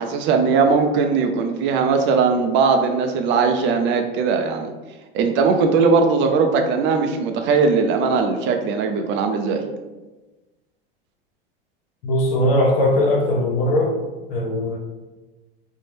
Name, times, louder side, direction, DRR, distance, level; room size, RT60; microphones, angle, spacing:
voice 1, 0.0-4.7 5.1-9.6, right 5 dB, 40° right, 5 dB, 0.4 m, -19 dB
voice 2, 12.0-14.0 14.3-14.8, left 1 dB, 75° left, 0 dB, 0.8 m, -19 dB
2.6 x 2.1 x 3.2 m, 1.2 s
hypercardioid pair, 95°, 29 cm